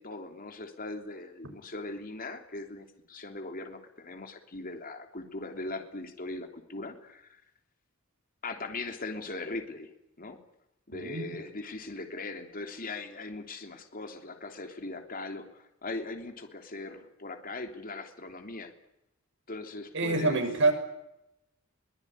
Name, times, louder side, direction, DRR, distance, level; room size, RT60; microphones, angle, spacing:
voice 1, 0.0-7.4 8.4-9.9 10.2-10.4 10.9-18.7 19.5-20.4, left 2 dB, 45° left, 5 dB, 3.3 m, -40 dB
voice 2, 10.9-11.4 19.9-20.7, right 3 dB, 60° right, 7 dB, 6.1 m, -26 dB
23.0 x 19.5 x 9.9 m, 0.83 s
head